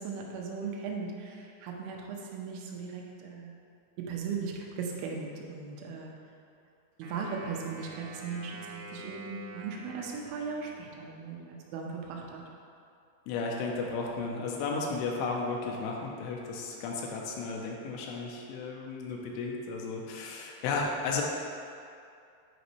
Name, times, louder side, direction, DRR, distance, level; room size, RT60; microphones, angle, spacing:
voice 1, 0.0-3.6 4.0-6.2 7.0-12.4, right 5 dB, 90° right, 0 dB, 3.1 m, -38 dB
Wind instrument woodwind instrument, 7.0-11.3, right 2 dB, 70° right, 1.6 m, -47 dB
voice 2, 13.3-21.2, left 4 dB, 85° left, -1 dB, 3.0 m, -34 dB
9.1 x 5.2 x 3.2 m, 2.5 s
omnidirectional pair, 5.5 m